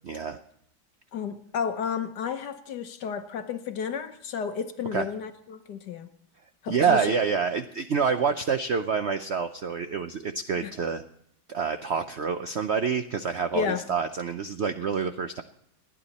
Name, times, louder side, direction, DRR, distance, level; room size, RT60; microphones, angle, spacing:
voice 1, 0.0-0.4 4.9-5.1 6.7-11.0 11.5-15.4, right 6 dB, 85° right, 8 dB, 0.5 m, -27 dB
voice 2, 1.1-6.1 6.6-7.1 10.6-10.7 13.5-13.8, left 6 dB, 65° left, 8 dB, 1.5 m, -32 dB
30.0 x 10.0 x 4.2 m, 0.71 s
omnidirectional pair, 2.1 m